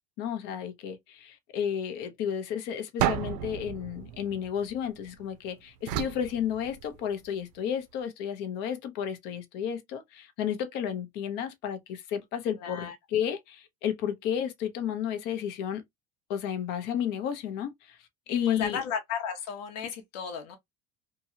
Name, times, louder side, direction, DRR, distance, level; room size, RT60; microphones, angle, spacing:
voice 1, 0.2-15.8 16.3-18.0 18.3-18.8, left 9 dB, 60° left, 0.8 m, -32 dB
sound 1, 3.0-5.2 5.9-7.2, right 13 dB, 90° right, 0.5 m, -33 dB
voice 2, 12.6-12.9 18.3-20.6, left 7 dB, 90° left, 1.0 m, -34 dB
2.9 x 2.2 x 2.7 m
cardioid pair, 140°, 20 cm